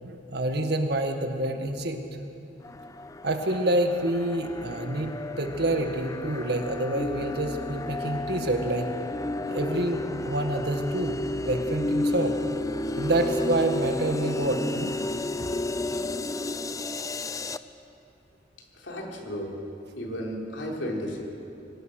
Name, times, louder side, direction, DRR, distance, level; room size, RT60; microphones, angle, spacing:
voice 1, 0.0-2.0 3.2-8.9 9.5-12.4 13.0-14.9, right 1 dB, 60° right, 5 dB, 1.8 m, -27 dB
sound 1, 2.6-17.6, left 2 dB, 20° left, 0.5 m, -32 dB
voice 2, 18.7-19.6 20.0-21.2, equal, 80° left, -1 dB, 3.6 m, -33 dB
24.5 x 18.0 x 6.5 m, 2.8 s
head